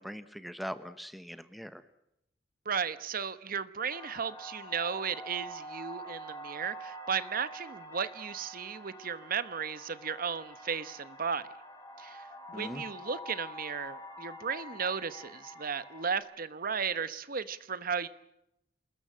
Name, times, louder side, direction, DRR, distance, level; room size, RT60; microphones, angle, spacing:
voice 1, 0.0-1.8 12.5-12.8, equal, ahead, 12 dB, 1.1 m, -41 dB
voice 2, 2.6-11.5 12.0-18.1, right 6 dB, 50° right, 14 dB, 1.1 m, -35 dB
sound 1, 3.9-16.2, right 1 dB, 20° left, 4.7 m, -46 dB
27.5 x 21.0 x 7.5 m, 0.80 s
head